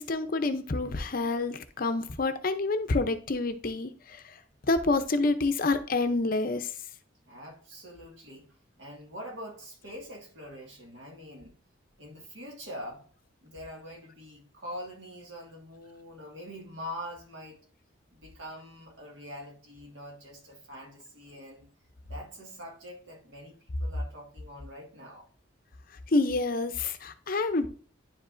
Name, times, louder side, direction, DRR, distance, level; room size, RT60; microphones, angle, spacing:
voice 1, 0.0-4.3 4.7-6.7 26.1-27.7, left 3 dB, 45° left, 0.6 m, -28 dB
voice 2, 7.3-11.6 12.0-13.1 13.4-17.6 18.1-21.7 22.1-25.3, equal, 65° right, 1.9 m, -44 dB
10.0 x 5.1 x 2.6 m
head